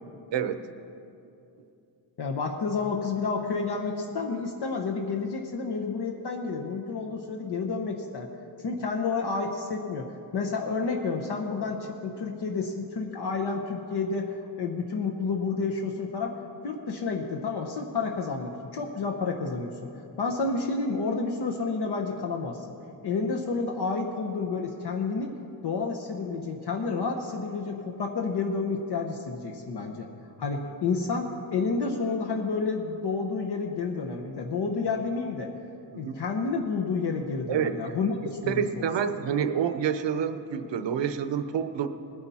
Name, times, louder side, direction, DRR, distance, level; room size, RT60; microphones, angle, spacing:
voice 1, 2.2-8.3 8.6-16.4 16.6-19.9 20.2-22.7 23.0-25.4 25.6-30.1 30.4-35.5 36.0-38.9, left 4 dB, 65° left, 2 dB, 1.0 m, -30 dB
voice 2, 37.5-38.0 38.5-41.9, right 8 dB, 75° right, 9 dB, 0.8 m, -28 dB
20.0 x 9.5 x 4.2 m, 2.8 s
wide cardioid pair, 115°, 43 cm